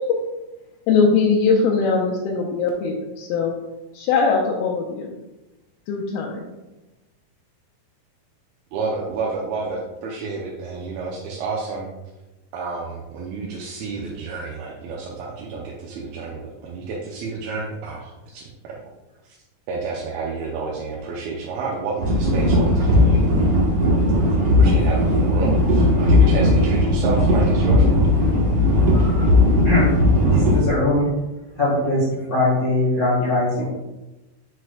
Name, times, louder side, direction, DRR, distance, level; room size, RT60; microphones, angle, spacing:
voice 1, 0.9-3.5 3.9-5.1 5.9-6.4, left 4 dB, 85° left, -3 dB, 2.6 m, -20 dB
voice 2, 8.7-11.9 12.5-18.8 19.7-23.3 24.6-28.0, right 4 dB, 80° right, -3 dB, 2.6 m, -30 dB
sound 1, 22.0-30.6, left 1 dB, 65° right, 1.5 m, -17 dB
voice 3, 28.9-29.3 29.6-30.0 30.2-31.1 31.5-33.6, left 2 dB, 55° left, -7 dB, 0.9 m, -21 dB
8.2 x 6.1 x 2.3 m, 1.0 s
omnidirectional pair, 4.4 m